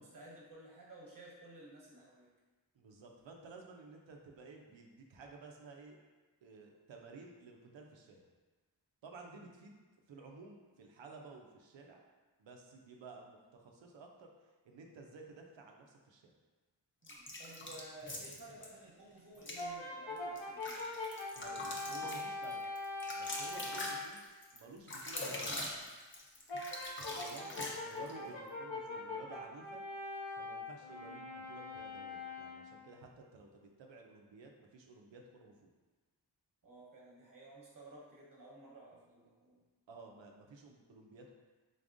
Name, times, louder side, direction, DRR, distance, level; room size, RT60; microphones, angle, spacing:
voice 1, 0.0-2.3 17.0-20.8 27.0-27.2 36.6-39.6, right 2 dB, 45° right, -4 dB, 1.1 m, -54 dB
voice 2, 2.7-6.0 6.4-8.3 9.0-9.7 10.1-12.0 12.4-14.3 14.6-16.2 21.3-22.6 23.1-24.2 24.5-25.7 27.0-29.8 30.4-35.7 39.9-41.3, right 3 dB, 85° right, 1 dB, 0.6 m, -53 dB
sound 1, 17.0-18.7 19.3-19.6 20.2-28.2, left 1 dB, 25° left, 0.7 m, -43 dB
Brass instrument, 19.6-24.1 26.5-32.8, left 2 dB, 85° left, 0.7 m, -43 dB
3.9 x 3.5 x 2.6 m, 1.3 s
cardioid pair, 55°, 44 cm